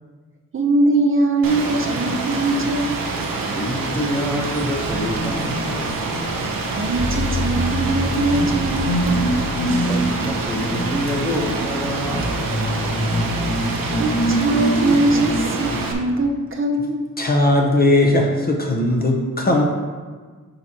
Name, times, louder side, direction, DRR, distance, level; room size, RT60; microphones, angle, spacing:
voice 1, 0.5-3.0 6.7-9.4 14.0-17.0, right 2 dB, 40° right, 2 dB, 0.6 m, -21 dB
Rain, 1.4-15.9, right 3 dB, 85° right, 0.9 m, -26 dB
voice 2, 3.5-6.1 9.9-13.1, left 1 dB, 5° left, 0 dB, 1.0 m, -27 dB
sound 1, 4.8-15.9, equal, 45° left, 1.8 m, -25 dB
voice 3, 17.2-19.6, left 1 dB, 30° left, 1 dB, 0.7 m, -18 dB
8.8 x 4.8 x 2.9 m, 1.5 s
wide cardioid pair, 110°, 33 cm